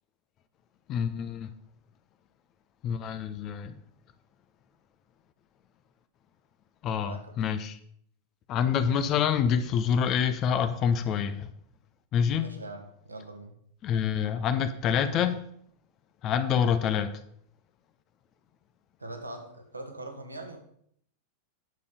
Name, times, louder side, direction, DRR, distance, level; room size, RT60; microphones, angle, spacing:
voice 1, 0.9-1.5 2.8-3.7 6.8-7.8 8.5-11.5 12.1-12.5 13.8-15.4 16.2-17.2, left 7 dB, 35° left, 10 dB, 0.7 m, -27 dB
voice 2, 6.9-7.4 12.4-13.6 19.0-20.6, right 2 dB, 80° right, 4 dB, 1.7 m, -42 dB
9.6 x 6.8 x 5.2 m, 0.67 s
figure-of-eight pair, 90°, 0 cm